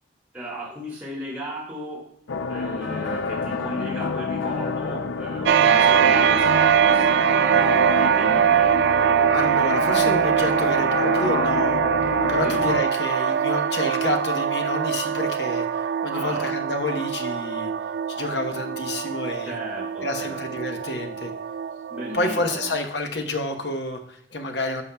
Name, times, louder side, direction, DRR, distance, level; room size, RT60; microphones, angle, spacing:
voice 1, 0.3-2.0 2.4-8.8 12.4-12.7 16.1-16.6 19.4-20.4 21.9-22.7, equal, 10° right, -7 dB, 2.1 m, -35 dB
sound 1, 2.3-12.8, left 4 dB, 90° left, 0.5 m, -28 dB
sound 2, 5.5-22.7, right 8 dB, 70° right, 0.3 m, -22 dB
voice 2, 9.3-17.7 18.2-19.5 20.0-21.3 22.1-24.8, left 2 dB, 70° left, 4 dB, 1.0 m, -29 dB
11.0 x 6.5 x 2.3 m, 0.71 s
head